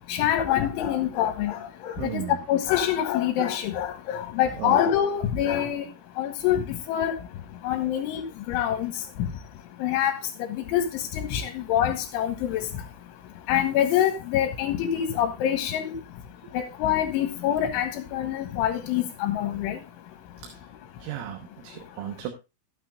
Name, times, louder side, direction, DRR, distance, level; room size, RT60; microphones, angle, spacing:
voice 1, 0.1-2.2 2.5-5.9 6.2-7.1 7.6-8.9 9.8-10.2 10.7-12.7 13.5-15.9 16.5-19.8, left 10 dB, 80° left, 7 dB, 3.2 m, -25 dB
voice 2, 2.0-2.4 4.6-4.8 21.0-22.3, right 11 dB, 80° right, 5 dB, 3.8 m, -34 dB
14.5 x 9.2 x 2.4 m, 0.26 s
omnidirectional pair, 5.9 m